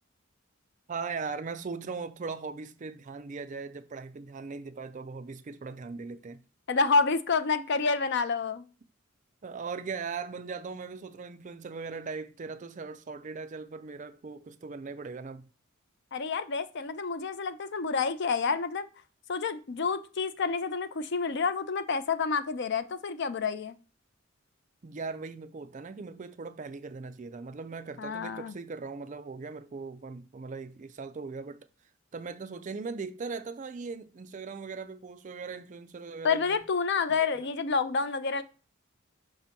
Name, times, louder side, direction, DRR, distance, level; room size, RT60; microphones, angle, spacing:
voice 1, 0.9-6.4 9.4-15.5 24.8-31.7 32.1-36.6 37.1-37.5, right 4 dB, 35° right, 0.4 m, -39 dB
voice 2, 6.7-8.7 16.1-18.9 19.3-23.8 28.0-28.5 36.2-38.4, left 4 dB, 55° left, 0.5 m, -28 dB
5.9 x 3.0 x 5.6 m
head